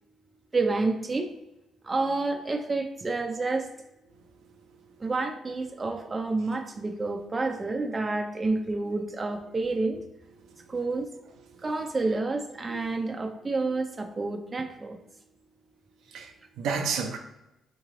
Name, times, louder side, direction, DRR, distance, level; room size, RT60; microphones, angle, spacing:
voice 1, 0.5-1.3 1.8-3.7 5.0-10.0 10.7-11.1 11.6-15.0, right 3 dB, 25° right, 0.6 m, -29 dB
voice 2, 16.1-17.2, right 5 dB, 80° right, 0.6 m, -32 dB
4.5 x 3.2 x 3.8 m
cardioid pair, 90°, 0 cm